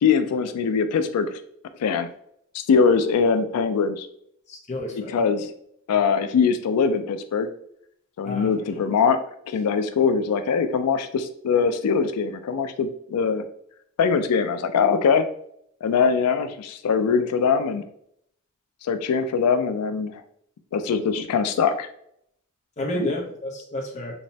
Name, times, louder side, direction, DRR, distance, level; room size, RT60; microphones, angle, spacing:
voice 1, 0.0-1.4 1.8-2.1 2.5-4.1 4.9-5.5 5.9-7.5 8.2-9.2 9.5-13.4 14.0-15.2 15.8-17.8 18.8-20.2 20.7-21.9 22.9-23.1, left 5 dB, 90° left, 9 dB, 0.3 m, -22 dB
voice 2, 4.5-5.2 8.2-8.5 22.8-24.2, left 1 dB, 30° left, 0 dB, 0.5 m, -30 dB
3.0 x 2.0 x 2.6 m, 0.69 s
head